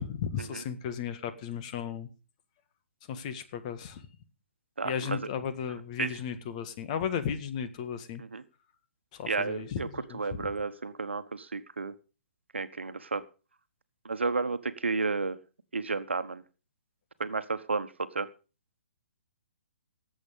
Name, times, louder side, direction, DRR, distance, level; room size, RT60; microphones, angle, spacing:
voice 1, 0.0-2.1 3.1-4.1 4.8-8.2 9.1-10.5, left 7 dB, 35° left, 10 dB, 1.6 m, -35 dB
voice 2, 4.8-5.2 6.0-6.1 8.2-8.4 9.3-9.9 10.1-11.9 12.5-13.2 14.0-15.4 15.7-16.4 17.2-17.9 18.1-18.3, right 4 dB, 75° right, 12 dB, 1.2 m, -32 dB
18.0 x 7.9 x 5.2 m, 0.34 s
figure-of-eight pair, 130°, 6 cm